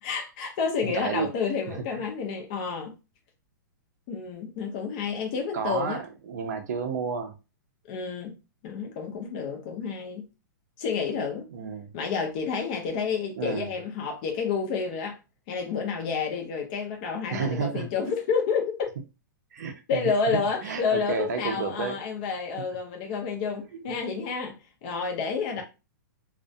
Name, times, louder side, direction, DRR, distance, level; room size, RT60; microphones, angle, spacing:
voice 1, 0.0-2.9 4.1-6.0 7.9-8.3 8.6-10.3 10.8-11.5 11.9-15.2 15.5-18.8 19.9-25.6, left 5 dB, 25° left, 0.4 m, -30 dB
voice 2, 0.8-1.3 1.7-1.8 5.5-7.4 11.5-11.9 13.4-13.7 17.3-17.9 19.5-22.0, right 5 dB, 55° right, 0.5 m, -31 dB
2.3 x 2.1 x 2.6 m
hypercardioid pair, 180°, 11 cm